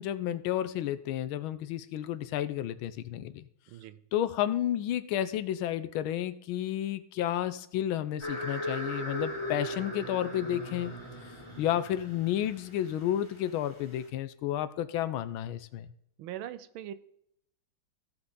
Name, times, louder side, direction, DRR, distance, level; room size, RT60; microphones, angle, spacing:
voice 1, 0.0-3.5 4.1-10.9 11.6-15.9, left 11 dB, 80° left, 13 dB, 1.4 m, -31 dB
voice 2, 3.7-4.0 16.2-16.9, right 11 dB, 90° right, 14 dB, 1.5 m, -41 dB
sound 1, 8.2-14.0, equal, 15° left, 2.1 m, -38 dB
15.5 x 5.9 x 3.7 m, 0.71 s
omnidirectional pair, 2.2 m